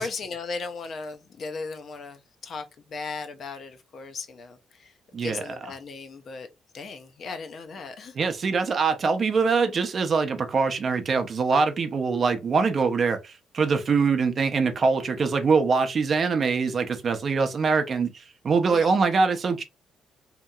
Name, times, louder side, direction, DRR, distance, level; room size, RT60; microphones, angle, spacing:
voice 1, 0.0-4.9 5.2-6.5 6.7-8.1 18.7-19.0, left 4 dB, 55° left, 0.5 m, -37 dB
voice 2, 5.1-5.4 8.1-19.6, right 5 dB, 45° right, 0.5 m, -23 dB
2.8 x 2.7 x 2.2 m
cardioid pair, 90°, 0 cm